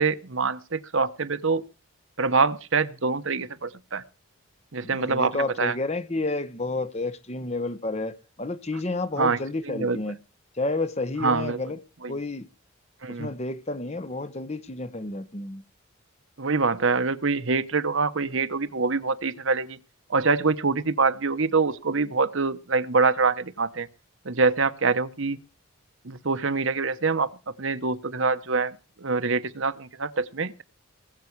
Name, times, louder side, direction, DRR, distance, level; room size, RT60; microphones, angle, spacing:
voice 1, 0.0-1.6 2.2-4.0 4.7-5.7 9.2-9.4 9.7-10.0 11.2-11.6 12.0-12.2 13.0-13.3 16.4-19.8 20.1-23.9 24.2-25.4 26.0-27.3 27.6-30.6, right 4 dB, 60° right, 1.0 m, -25 dB
voice 2, 4.8-10.2 10.5-11.8 12.1-12.5 13.1-15.6, left 2 dB, 30° left, 1.0 m, -30 dB
20.5 x 8.3 x 4.7 m
head